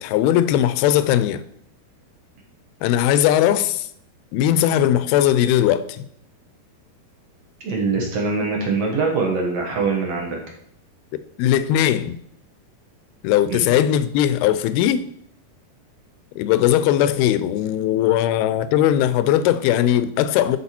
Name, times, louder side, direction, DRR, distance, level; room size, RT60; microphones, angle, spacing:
voice 1, 0.0-1.4 2.8-3.9 4.3-6.1 11.4-12.2 13.2-15.1 16.4-20.6, left 11 dB, 80° left, 2.4 m, -19 dB
voice 2, 7.6-10.4 13.5-13.6, right 4 dB, 60° right, 1.7 m, -23 dB
11.0 x 4.6 x 4.4 m
omnidirectional pair, 4.7 m